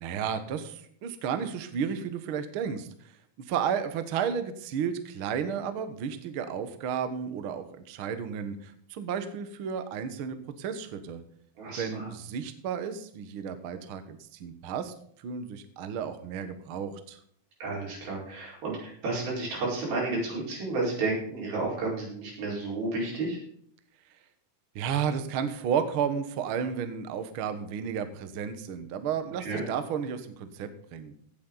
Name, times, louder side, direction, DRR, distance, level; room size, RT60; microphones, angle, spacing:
voice 1, 0.0-2.9 3.5-11.2 11.8-14.9 15.2-17.2 24.7-31.1, right 7 dB, 90° right, 10 dB, 1.1 m, -32 dB
voice 2, 11.6-12.1 17.6-23.4 29.4-29.6, right 3 dB, 75° right, -3 dB, 6.8 m, -31 dB
16.5 x 8.6 x 4.0 m, 0.63 s
omnidirectional pair, 4.3 m